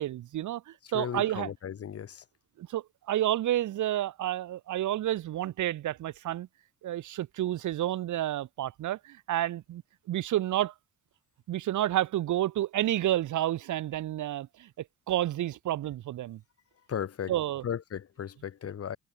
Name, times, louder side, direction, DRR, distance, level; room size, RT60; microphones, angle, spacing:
voice 1, 0.0-1.5 2.6-6.5 6.8-9.8 10.1-10.7 11.5-16.4 17.3-17.6, right 13 dB, 75° right, 2.3 m, -30 dB
voice 2, 0.9-2.2 16.9-17.3 17.6-19.0, left 8 dB, 50° left, 2.1 m, -35 dB
cardioid pair, 90°, 30 cm